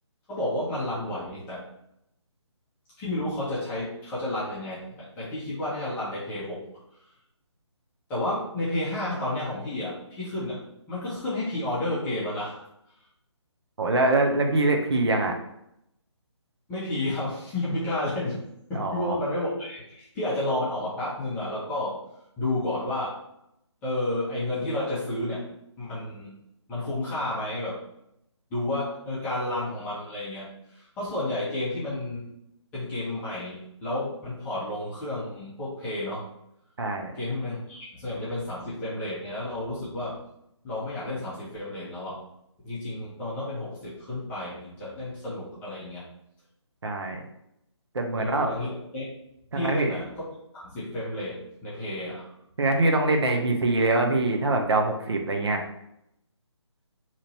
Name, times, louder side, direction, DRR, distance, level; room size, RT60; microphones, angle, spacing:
voice 1, 0.3-1.6 3.0-6.6 8.1-10.6 10.9-12.7 16.7-18.4 18.7-22.0 22.4-23.2 23.8-25.4 25.8-26.3 26.7-27.8 28.5-32.3 32.7-36.3 37.1-40.2 40.6-42.2 42.6-46.0 48.2-49.0 49.5-50.1 50.5-52.3, left 1 dB, 10° left, -10 dB, 0.7 m, -31 dB
voice 2, 13.8-15.4 18.7-19.2 36.8-37.1 46.8-47.2 47.9-48.5 49.5-49.9 52.6-55.6, right 2 dB, 60° right, 3 dB, 0.7 m, -24 dB
3.0 x 2.6 x 4.2 m, 0.79 s
figure-of-eight pair, 145°, 15 cm